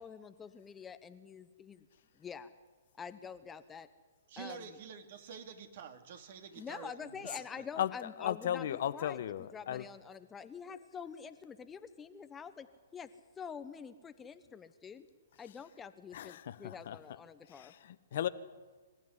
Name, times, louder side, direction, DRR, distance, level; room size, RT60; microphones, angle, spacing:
voice 1, 0.0-1.8 2.2-2.5 3.0-3.9 4.4-4.6 6.6-12.7 12.9-13.1 13.4-15.1 15.4-17.7, left 6 dB, 15° left, 11 dB, 1.1 m, -47 dB
voice 2, 4.3-7.6, right 6 dB, 55° right, 5 dB, 3.0 m, -48 dB
voice 3, 8.2-9.8 16.1-17.0 17.6-18.3, left 10 dB, 55° left, 12 dB, 1.2 m, -36 dB
25.0 x 14.5 x 9.9 m, 1.4 s
hypercardioid pair, 130°, 0 cm